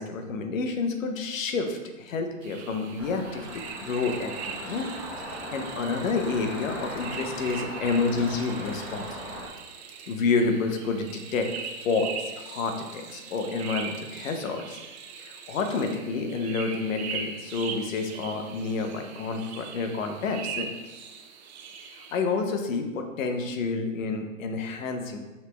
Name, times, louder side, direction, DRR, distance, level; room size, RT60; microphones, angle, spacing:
voice 1, 0.0-4.9 5.2-9.2 10.1-11.5 11.8-14.8 15.2-20.7 21.9-25.2, left 4 dB, 75° left, 5 dB, 0.7 m, -29 dB
sound 1, 2.4-22.2, right 6 dB, 55° right, 0.6 m, -40 dB
sound 2, 3.0-9.5, equal, 5° right, 0.5 m, -39 dB
5.6 x 3.0 x 2.2 m, 1.1 s
hypercardioid pair, 135°, 40 cm